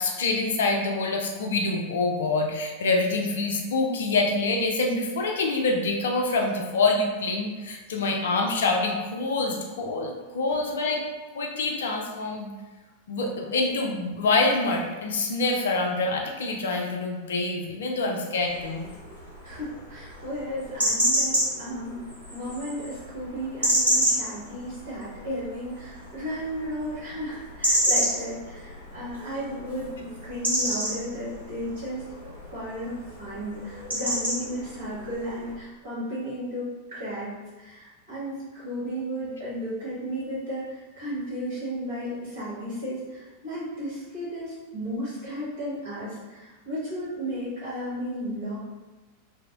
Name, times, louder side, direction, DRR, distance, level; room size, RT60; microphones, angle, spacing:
voice 1, 0.0-11.0 11.3-12.5 13.1-18.9, left 3 dB, 60° left, 1 dB, 0.4 m, -26 dB
sound 1, 18.4-35.5, equal, 80° right, 0.7 m, -30 dB
voice 2, 19.4-32.0 32.5-48.6, equal, 60° right, -9 dB, 1.4 m, -34 dB
2.6 x 2.0 x 2.4 m, 1.2 s
figure-of-eight pair, 90°, 0 cm